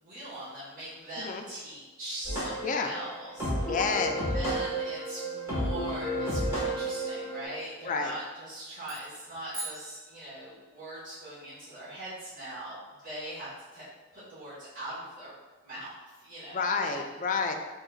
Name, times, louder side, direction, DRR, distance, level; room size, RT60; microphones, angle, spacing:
voice 1, 0.0-3.7 4.3-13.8 14.1-15.3 15.6-17.1, right 1 dB, 40° right, -13 dB, 1.4 m, -41 dB
sound 1, 2.2-7.4, right 1 dB, 15° right, 1.4 m, -32 dB
voice 2, 3.7-4.1 7.8-8.1 16.5-17.5, left 4 dB, 40° left, 4 dB, 0.3 m, -29 dB
sound 2, 8.8-10.7, right 2 dB, 90° right, 1.5 m, -43 dB
3.9 x 3.6 x 2.4 m, 1.3 s
head